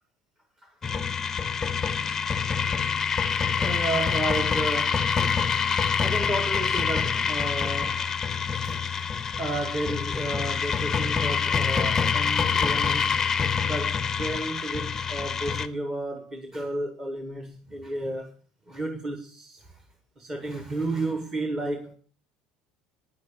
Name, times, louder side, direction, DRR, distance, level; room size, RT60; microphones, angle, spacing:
sound 1, 0.8-15.7, left 6 dB, 20° left, 0.5 m, -26 dB
voice 1, 3.3-5.2 5.9-9.1 9.4-13.3 13.6-18.3 18.7-19.8 20.2-21.9, right 2 dB, 20° right, 1.3 m, -32 dB
9.8 x 6.4 x 8.6 m
cardioid pair, 140°, 2 cm